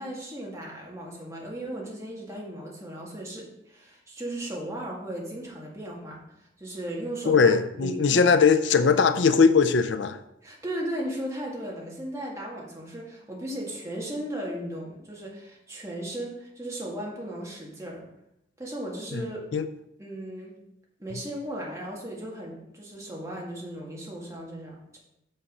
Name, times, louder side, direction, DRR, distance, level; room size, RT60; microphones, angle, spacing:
voice 1, 0.0-7.5 7.8-8.4 8.7-9.0 10.4-18.1 18.6-19.5 20.0-20.6 21.0-25.0, right 1 dB, 15° right, -3 dB, 1.9 m, -36 dB
voice 2, 7.3-10.2 19.1-19.7, left 5 dB, 80° left, 10 dB, 0.5 m, -20 dB
6.9 x 5.6 x 5.4 m, 0.82 s
head